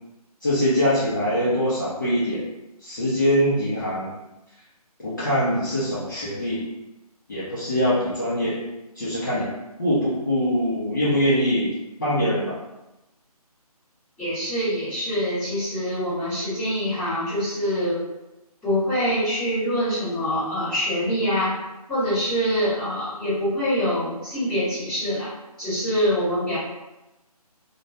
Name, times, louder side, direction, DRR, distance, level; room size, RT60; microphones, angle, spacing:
voice 1, 0.4-2.4 2.8-4.1 5.0-6.7 7.3-8.6 9.0-9.5 9.8-11.7 12.0-12.5, equal, 30° left, -11 dB, 0.5 m, -23 dB
voice 2, 14.2-18.0 18.6-21.5 21.9-25.3 25.6-26.6, equal, 5° left, -20 dB, 0.9 m, -25 dB
2.2 x 2.1 x 2.7 m, 1.0 s
figure-of-eight pair, 165°, 20 cm